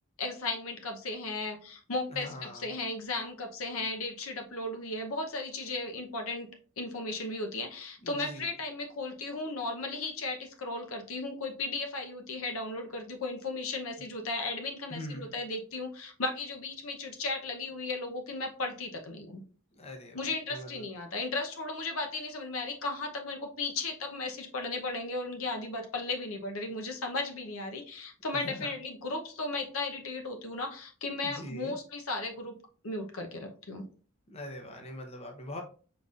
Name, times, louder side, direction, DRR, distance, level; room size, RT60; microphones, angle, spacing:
voice 1, 0.2-6.5 6.8-19.4 20.1-32.5 32.8-33.8, left 3 dB, 70° left, 4 dB, 0.8 m, -35 dB
voice 2, 2.1-2.6 8.0-8.5 14.9-15.3 19.7-20.8 28.4-28.7 31.2-31.8 34.3-35.6, left 1 dB, 30° left, 3 dB, 0.8 m, -42 dB
5.3 x 3.9 x 2.4 m, 0.39 s
head